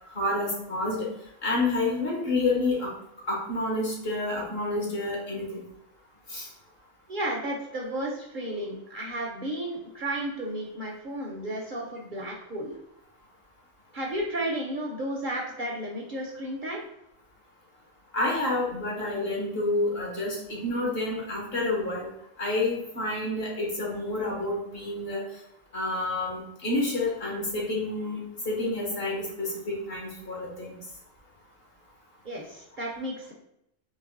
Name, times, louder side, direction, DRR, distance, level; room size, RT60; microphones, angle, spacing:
voice 1, 0.1-1.1 1.4-2.9 3.3-5.6 6.3-6.5 18.1-22.1 22.4-25.2 25.7-28.2 28.4-30.8, left 2 dB, 50° left, -3 dB, 1.6 m, -29 dB
voice 2, 7.1-12.7 13.9-16.8 32.2-33.3, right 1 dB, 45° right, -1 dB, 0.8 m, -33 dB
4.1 x 3.0 x 3.8 m, 0.81 s
omnidirectional pair, 1.3 m